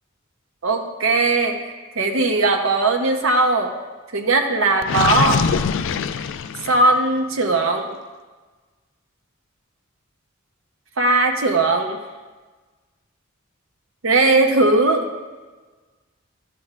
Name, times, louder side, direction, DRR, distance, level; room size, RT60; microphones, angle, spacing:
voice 1, 0.6-3.7 4.1-5.4 6.7-7.9 11.0-12.0 14.0-15.1, right 2 dB, 70° right, 3 dB, 0.8 m, -19 dB
Gurgling, 4.8-7.0, left 6 dB, 65° left, 0.3 m, -23 dB
12.0 x 8.4 x 2.4 m, 1.3 s
head